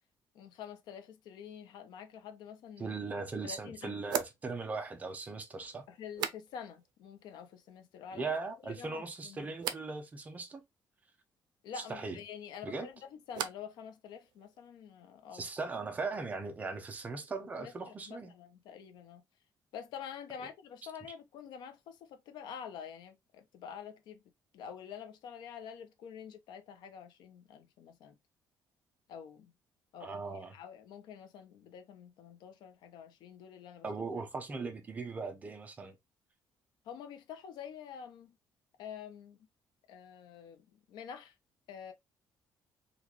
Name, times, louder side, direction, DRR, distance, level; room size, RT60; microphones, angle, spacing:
voice 1, 0.3-3.0 3.4-4.0 5.9-8.3 8.6-9.5 11.6-15.5 17.6-19.2 19.7-24.2 24.5-28.2 29.1-29.5 29.9-33.9 36.8-38.4 38.8-39.4 39.9-41.4 41.7-41.9, left 8 dB, 85° left, 0.7 m, -47 dB
voice 2, 2.8-5.8 8.1-10.6 11.9-12.2 12.6-12.9 15.3-18.3 30.0-30.5 33.8-35.9, right 4 dB, 20° right, 0.6 m, -39 dB
sound 1, 2.8-2.9 4.0-6.9 7.2-7.8 8.1-8.7 9.6-9.9 12.3-13.8 14.1-14.7, right 9 dB, 80° right, 0.5 m, -42 dB
3.9 x 2.4 x 2.9 m
cardioid pair, 175°, 7 cm